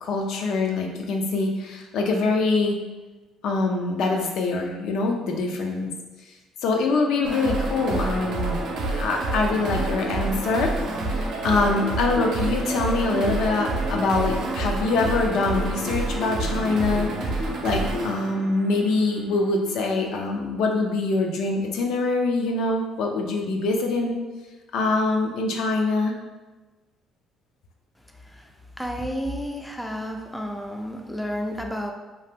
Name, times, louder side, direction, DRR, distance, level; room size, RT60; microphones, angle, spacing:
voice 1, 0.0-2.8 3.4-5.9 6.6-8.6 8.9-10.7 11.0-17.1 17.4-24.2 24.7-26.1, left 3 dB, 75° left, 2 dB, 0.4 m, -24 dB
sound 1, 7.2-19.3, right 2 dB, 75° right, 0.6 m, -28 dB
voice 2, 28.8-31.9, equal, 5° left, 2 dB, 0.4 m, -31 dB
2.8 x 2.1 x 3.4 m, 1.2 s
supercardioid pair, 75°, 0 cm